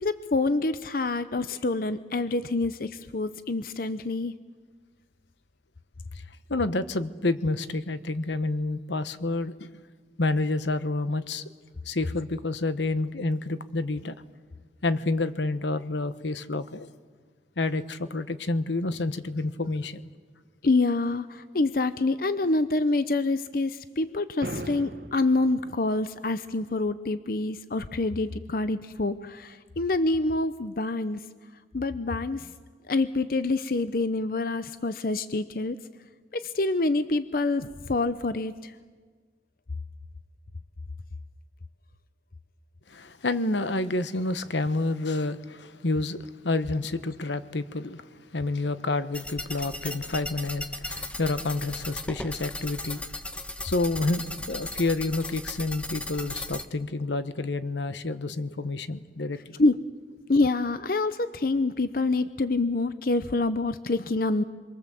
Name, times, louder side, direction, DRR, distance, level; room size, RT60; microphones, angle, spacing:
voice 1, 0.0-4.3 20.6-31.2 31.7-32.5 32.9-35.8 36.3-38.7 59.6-59.8 60.3-64.4, left 2 dB, 55° left, 0.7 m, -26 dB
voice 2, 6.5-9.7 10.2-11.4 11.8-14.1 14.8-16.9 17.6-20.0 42.9-53.0 53.6-59.4, left 2 dB, 85° left, 1.1 m, -29 dB
sound 1, 24.4-25.4, right 1 dB, 65° right, 1.2 m, -36 dB
sound 2, 49.1-56.6, left 1 dB, 5° left, 1.0 m, -36 dB
27.5 x 23.0 x 7.6 m
head